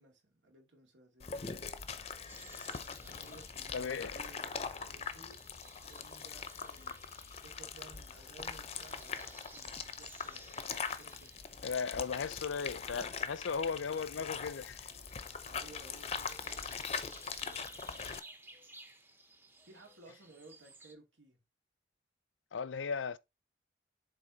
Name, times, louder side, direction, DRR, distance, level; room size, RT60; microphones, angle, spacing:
voice 1, 0.0-1.5 3.0-5.4 5.8-7.1 7.4-10.6 11.0-11.4 13.3-13.7 15.4-18.0 19.6-21.4, right 3 dB, 80° right, 2.2 m, -58 dB
sound 1, 1.2-18.2, left 6 dB, 35° left, 0.5 m, -42 dB
sound 2, 2.3-20.9, right 2 dB, 10° right, 0.7 m, -57 dB
voice 2, 3.7-4.2 11.6-14.8 22.5-23.2, left 5 dB, 85° left, 0.5 m, -36 dB
7.6 x 3.4 x 3.9 m
head